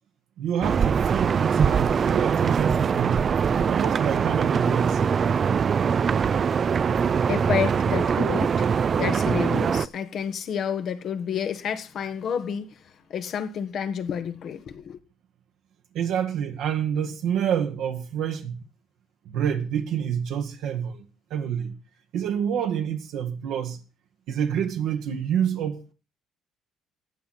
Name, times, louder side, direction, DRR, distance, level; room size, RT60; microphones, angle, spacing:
voice 1, 0.4-3.2 3.6-5.0 15.9-18.6 19.2-21.8 22.1-23.8 24.3-25.9, right 8 dB, 75° right, 1.6 m, -28 dB
sound 1, 0.6-9.9, right 6 dB, 45° right, 0.5 m, -22 dB
voice 2, 7.3-8.6 8.9-12.8 13.1-15.0, left 7 dB, 60° left, 1.6 m, -29 dB
14.0 x 8.4 x 4.2 m
supercardioid pair, 80°, 0 cm